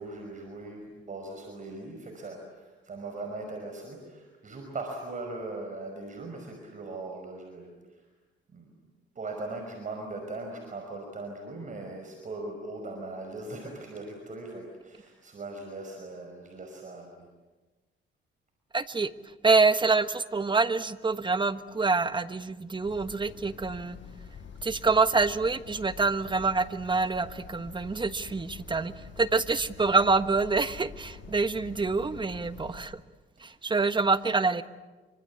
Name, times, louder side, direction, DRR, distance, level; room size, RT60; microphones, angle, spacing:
voice 1, 0.0-8.0 8.5-8.7 9.2-17.3, right 2 dB, 40° right, 2 dB, 5.6 m, -39 dB
voice 2, 18.7-19.1 19.4-24.0 24.6-33.0 33.4-34.6, right 4 dB, 25° right, 11 dB, 1.3 m, -26 dB
sound 1, 22.8-32.8, left 6 dB, 70° left, 6.1 m, -46 dB
26.5 x 25.5 x 8.6 m, 1.2 s
cardioid pair, 90°, 20 cm